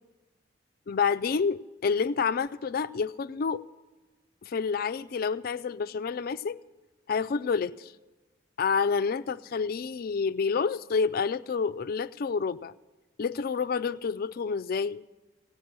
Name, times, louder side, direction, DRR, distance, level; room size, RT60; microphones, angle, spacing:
voice 1, 0.9-3.6 4.4-6.6 7.1-7.9 8.6-12.7 13.2-15.0, left 5 dB, 45° left, 12 dB, 0.3 m, -28 dB
17.0 x 9.5 x 6.0 m, 1.2 s
head